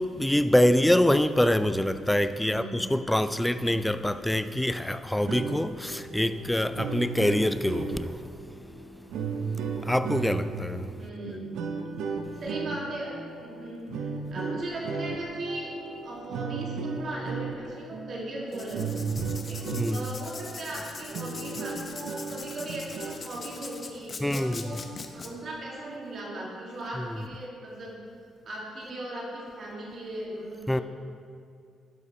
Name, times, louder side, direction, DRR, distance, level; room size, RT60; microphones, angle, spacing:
voice 1, 0.0-9.0 9.3-9.5 9.8-10.9 19.1-19.4 19.7-20.0 24.2-24.8 27.0-27.2 30.7-30.8, left 1 dB, 5° left, 0.4 m, -25 dB
voice 2, 2.4-3.1 11.0-11.7 12.4-15.7 16.0-18.9 19.5-24.8 25.1-28.0 28.4-30.8, right 1 dB, 55° right, 2.3 m, -38 dB
sound 1, 5.1-20.3 20.7-20.8 21.1-23.3, right 5 dB, 85° right, 0.7 m, -35 dB
Writing, 18.5-25.3, left 4 dB, 40° left, 0.7 m, -42 dB
12.0 x 5.0 x 4.2 m
cardioid pair, 90°, 0 cm